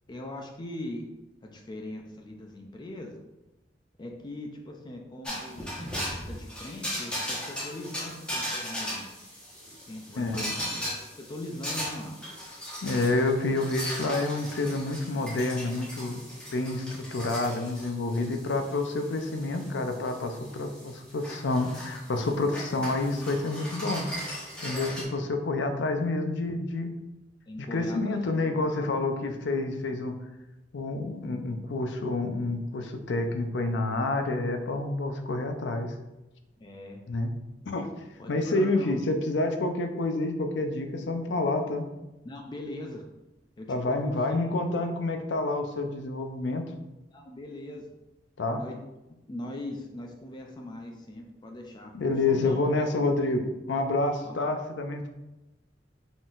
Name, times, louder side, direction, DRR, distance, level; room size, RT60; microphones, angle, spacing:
voice 1, 0.1-1.1 1.4-3.2 4.0-9.1 9.9-12.2 27.5-28.9 36.6-37.1 38.2-39.1 42.2-43.0 43.6-44.5 47.1-47.9 48.5-48.8 49.3-51.9 52.3-52.6 54.2-54.5, left 1 dB, 25° left, 2 dB, 0.4 m, -41 dB
sound 1, 5.2-25.0, equal, 5° left, 1.1 m, -38 dB
voice 2, 10.2-10.5 12.8-16.2 16.5-24.1 24.6-26.9 27.7-30.2 30.7-35.9 37.1-37.3 37.7-37.9 38.3-41.9 43.7-46.7 48.4-48.6 51.9-53.4 53.7-55.1, left 2 dB, 80° left, 6 dB, 0.5 m, -28 dB
4.0 x 3.8 x 2.4 m, 1.0 s
head